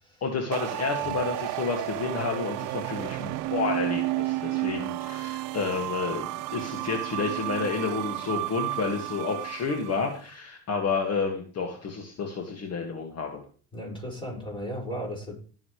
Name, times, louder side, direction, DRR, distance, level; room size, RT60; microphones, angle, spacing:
voice 1, 0.2-13.4, left 4 dB, 50° left, 2 dB, 2.2 m, -30 dB
sound 1, 0.5-10.1, right 18 dB, 75° right, 0.7 m, -32 dB
voice 2, 13.7-15.3, equal, 15° left, -2 dB, 6.1 m, -36 dB
18.0 x 7.2 x 3.4 m, 0.41 s
supercardioid pair, 95°, 32 cm